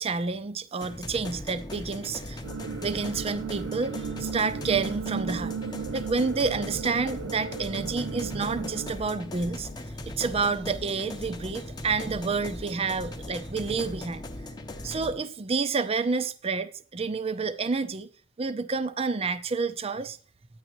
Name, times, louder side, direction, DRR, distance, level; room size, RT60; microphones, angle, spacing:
voice 1, 0.0-2.4 2.8-5.6 5.9-9.7 10.0-14.2 14.8-18.1 18.4-20.2, right 4 dB, 30° right, 0.5 m, -29 dB
sound 1, 0.8-15.1, left 1 dB, 20° left, 0.8 m, -39 dB
sound 2, 2.4-8.9, right 6 dB, 90° right, 0.5 m, -35 dB
10.0 x 8.9 x 3.0 m
head